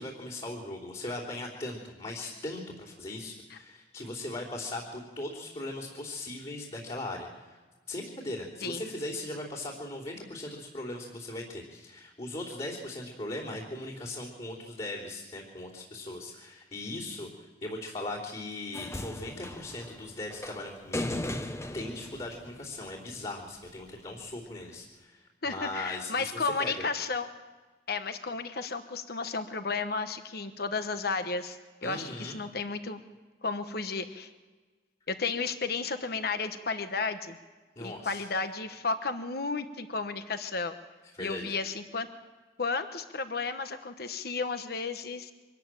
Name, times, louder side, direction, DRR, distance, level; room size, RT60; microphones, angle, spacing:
voice 1, 0.0-7.6 7.9-21.2 21.7-26.8 31.8-32.4 37.7-38.3 41.1-41.5, left 2 dB, 35° left, -6 dB, 3.3 m, -39 dB
sound 1, 18.7-23.1 24.2-24.3, left 1 dB, 15° left, 0.9 m, -37 dB
voice 2, 25.4-27.3 27.9-33.0 33.4-34.3 35.1-37.4 37.8-40.7 41.2-42.1 42.6-45.3, left 4 dB, 55° left, 9 dB, 1.1 m, -33 dB
24.5 x 14.0 x 9.0 m, 1.3 s
head